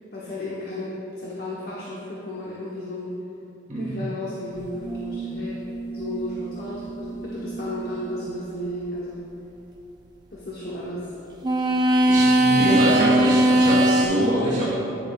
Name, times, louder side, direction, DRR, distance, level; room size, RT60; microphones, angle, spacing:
voice 1, 0.1-3.2 3.8-5.6 5.9-9.3 10.3-11.1 12.5-14.0 14.4-14.5, left 1 dB, 50° left, -6 dB, 0.9 m, -33 dB
sound 1, 4.8-8.3 11.4-14.0, right 1 dB, 20° right, 0.5 m, -22 dB
voice 2, 11.7-14.7, right 1 dB, 40° right, -5 dB, 1.0 m, -24 dB
10.5 x 7.1 x 2.2 m, 2.8 s
head